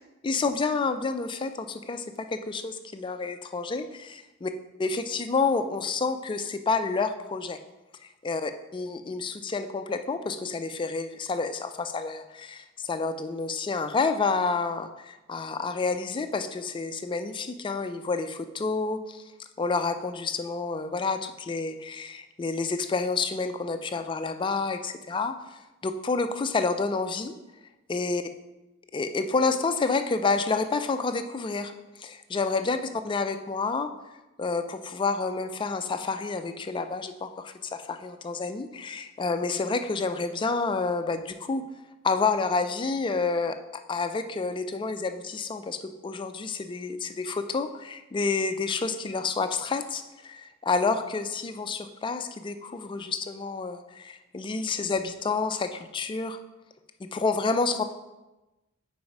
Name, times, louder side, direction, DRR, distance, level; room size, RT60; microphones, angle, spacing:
voice 1, 0.2-4.5 4.8-7.6 8.0-19.2 19.6-27.3 27.9-28.2 28.9-31.7 32.0-32.8 33.0-33.9 34.4-41.6 42.0-56.4 57.0-57.8, left 4 dB, 20° left, 8 dB, 0.3 m, -29 dB
4.7 x 4.6 x 5.2 m, 1.0 s
head